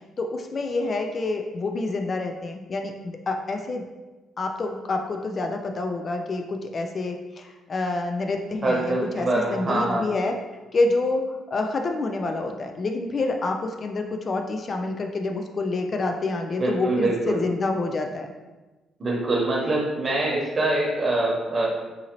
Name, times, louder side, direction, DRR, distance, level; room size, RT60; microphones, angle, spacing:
voice 1, 0.2-3.8 4.4-10.4 10.7-18.3, left 3 dB, 40° left, 4 dB, 0.3 m, -27 dB
voice 2, 8.6-10.0 16.6-17.4 19.0-21.7, right 2 dB, 35° right, -2 dB, 1.0 m, -24 dB
3.8 x 2.7 x 2.9 m, 1.2 s
cardioid pair, 90°, 0 cm